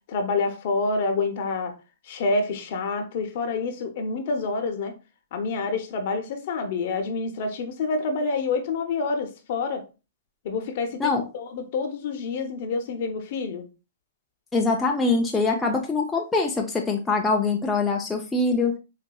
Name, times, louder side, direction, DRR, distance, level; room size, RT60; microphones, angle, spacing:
voice 1, 0.1-1.7 2.1-4.9 5.3-9.8 10.4-13.7, left 3 dB, 55° left, 0.8 m, -27 dB
voice 2, 14.5-18.7, left 3 dB, 10° left, 0.5 m, -23 dB
4.0 x 2.5 x 2.2 m
hypercardioid pair, 140°, 0 cm